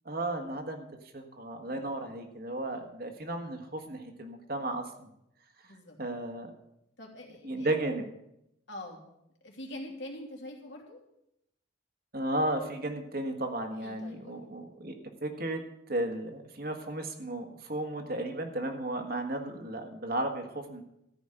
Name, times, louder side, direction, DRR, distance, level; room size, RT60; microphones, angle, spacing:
voice 1, 0.0-0.9 1.1-5.1 6.0-6.5 7.4-8.0 12.1-14.9 15.2-15.6 15.9-20.8, right 1 dB, 50° right, 5 dB, 1.5 m, -34 dB
voice 2, 1.6-2.1 2.7-2.9 5.6-6.0 7.0-7.7 8.7-9.1 9.4-11.0 13.8-14.4, left 1 dB, 65° left, 0 dB, 2.7 m, -45 dB
13.5 x 5.3 x 8.9 m, 0.81 s
head